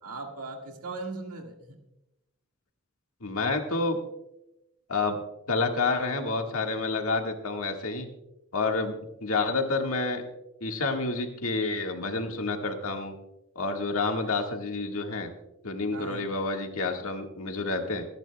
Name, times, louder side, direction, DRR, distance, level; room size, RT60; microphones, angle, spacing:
voice 1, 0.0-1.8 14.2-14.3 15.9-16.2, right 3 dB, 90° right, 2 dB, 1.8 m, -39 dB
voice 2, 3.2-4.0 4.9-5.2 5.5-8.1 8.5-10.2 10.6-13.1 13.5-15.3 15.6-18.0, left 3 dB, 75° left, 3 dB, 1.7 m, -29 dB
28.0 x 10.5 x 2.2 m, 0.91 s
head